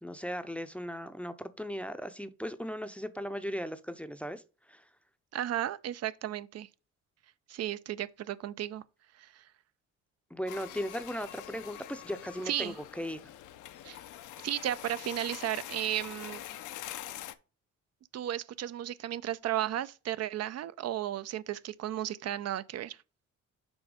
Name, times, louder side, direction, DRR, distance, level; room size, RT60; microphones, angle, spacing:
voice 1, 0.0-4.4 4.7-4.8 10.3-13.2, equal, 5° left, 0.6 m, -37 dB
voice 2, 5.3-6.7 7.5-8.8 9.2-9.4 12.5-12.8 13.8-14.0 14.4-16.4 18.1-23.0, right 12 dB, 55° right, 0.5 m, -34 dB
sound 1, 10.5-17.3, left 13 dB, 80° left, 0.7 m, -45 dB
6.2 x 4.3 x 4.8 m
cardioid pair, 90°, 30 cm